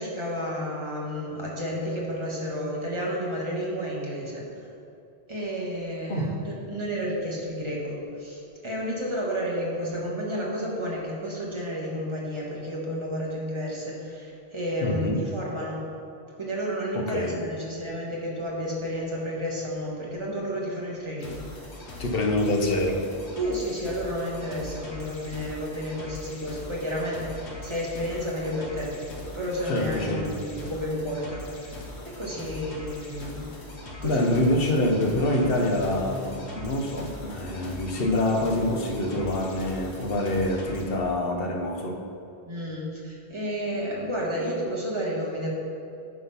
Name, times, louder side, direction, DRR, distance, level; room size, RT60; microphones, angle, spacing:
voice 1, 0.0-4.5 5.3-15.8 16.4-21.4 23.3-29.0 29.3-31.7 32.0-33.5 34.0-34.6 42.5-45.5, equal, 25° right, -4 dB, 1.5 m, -31 dB
voice 2, 14.8-15.2 16.9-17.4 22.0-23.1 29.7-30.3 34.0-42.0, left 1 dB, 60° left, 2 dB, 1.1 m, -26 dB
sound 1, 21.2-40.8, left 2 dB, 80° left, 1.4 m, -41 dB
sound 2, 31.3-38.3, right 1 dB, 65° right, 2.2 m, -45 dB
9.6 x 3.8 x 5.7 m, 2.7 s
omnidirectional pair, 1.1 m